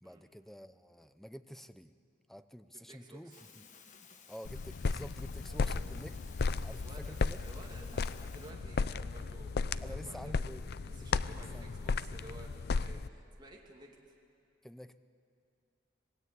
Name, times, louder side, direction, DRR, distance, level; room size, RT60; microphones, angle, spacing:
voice 1, 0.0-1.9 2.3-3.6 4.3-6.2 6.6-7.4 9.8-10.7 11.3-11.9 14.6-15.0, equal, ahead, 11 dB, 0.6 m, -49 dB
voice 2, 2.9-3.4 6.8-10.4 10.8-14.1, right 1 dB, 25° right, -2 dB, 2.6 m, -54 dB
sound 1, 3.3-8.5, left 6 dB, 40° left, 1.4 m, -57 dB
sound 2, 4.4-13.1, left 4 dB, 60° left, 0.5 m, -35 dB
sound 3, 5.5-12.0, equal, 60° right, 1.4 m, -59 dB
26.0 x 19.5 x 8.3 m, 2.5 s
head